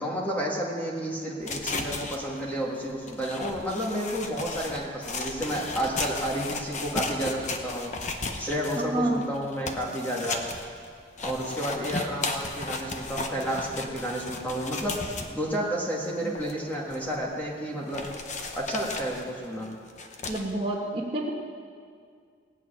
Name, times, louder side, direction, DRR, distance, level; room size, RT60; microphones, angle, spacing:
voice 1, 0.0-7.9 8.4-10.4 11.2-15.0 15.3-18.1 18.5-19.7, equal, 10° left, -4 dB, 1.9 m, -31 dB
sound 1, 1.4-15.5 16.0-16.1 16.3-17.4 17.9-20.5, left 3 dB, 40° left, 1.1 m, -35 dB
voice 2, 8.7-9.2 20.2-21.3, right 1 dB, 25° right, -6 dB, 1.7 m, -28 dB
18.5 x 6.5 x 9.2 m, 2.1 s
head